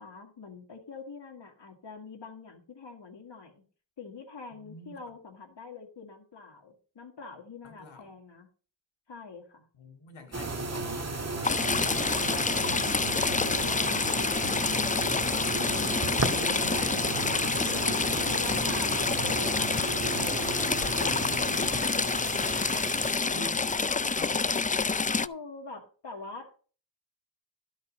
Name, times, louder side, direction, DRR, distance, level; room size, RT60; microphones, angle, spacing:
voice 1, 0.0-3.6 4.0-8.5 9.1-9.7 13.1-15.1 18.0-20.5 25.2-26.6, left 4 dB, 70° left, 1.9 m, -45 dB
voice 2, 4.5-5.2 7.6-8.1 9.7-12.8 16.0-18.2 21.1-21.9 22.2-22.8 23.2-24.8, left 2 dB, 85° left, 2.2 m, -46 dB
sound 1, 10.3-23.1, right 3 dB, 35° right, 1.8 m, -34 dB
Stream / Trickle dribble, 11.4-25.3, left 4 dB, 20° left, 0.4 m, -28 dB
12.0 x 5.4 x 6.2 m
cardioid pair, 55°, 45 cm